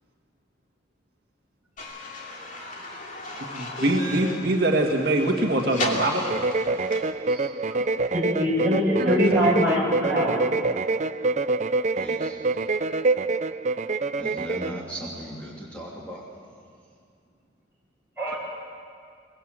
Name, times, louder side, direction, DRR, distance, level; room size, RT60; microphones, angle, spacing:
sound 1, 1.8-7.0, left 2 dB, 40° left, 2.8 m, -36 dB
voice 1, 3.5-6.2 7.3-7.5 9.0-9.2, right 1 dB, 55° right, 1 dB, 1.8 m, -23 dB
voice 2, 5.8-6.2 12.0-12.4 14.2-16.2, equal, 5° left, -5 dB, 2.9 m, -37 dB
sound 2, 6.2-14.8, right 3 dB, 40° right, 0.5 m, -26 dB
voice 3, 8.1-10.4 18.2-18.4, equal, 10° right, -5 dB, 6.2 m, -23 dB
23.5 x 20.5 x 7.7 m, 2.2 s
head